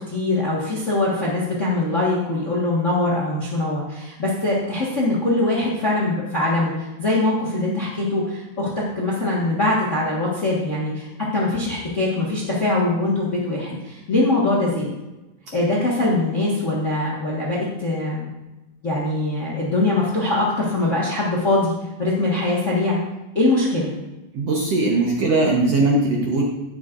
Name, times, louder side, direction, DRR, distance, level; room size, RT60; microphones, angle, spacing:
voice 1, 0.1-11.1 11.3-14.9 15.5-18.3 18.8-21.7 22.0-23.0 23.3-23.9, left 2 dB, 40° left, -5 dB, 1.0 m, -22 dB
voice 2, 24.3-26.4, right 2 dB, 65° right, -2 dB, 1.7 m, -19 dB
11.0 x 9.4 x 2.6 m, 1.0 s
omnidirectional pair, 4.0 m